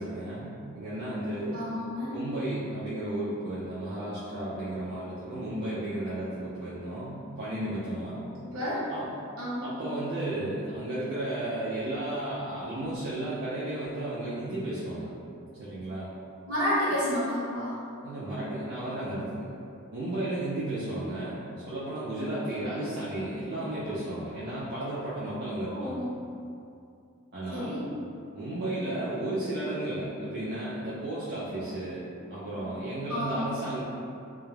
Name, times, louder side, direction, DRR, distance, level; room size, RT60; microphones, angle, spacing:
voice 1, 0.0-1.6 2.1-8.2 8.9-9.1 9.6-15.1 15.6-16.1 18.0-19.5 19.9-21.4 21.7-26.1 27.3-27.8 28.3-32.0 32.3-33.8, right 1 dB, 50° right, -10 dB, 0.4 m, -33 dB
voice 2, 1.5-2.1 8.4-8.8 9.4-9.7 16.5-17.8 22.6-22.9 25.6-26.1 27.5-27.9 33.1-33.5, equal, 70° right, -9 dB, 0.9 m, -30 dB
2.3 x 2.0 x 3.1 m, 2.5 s
head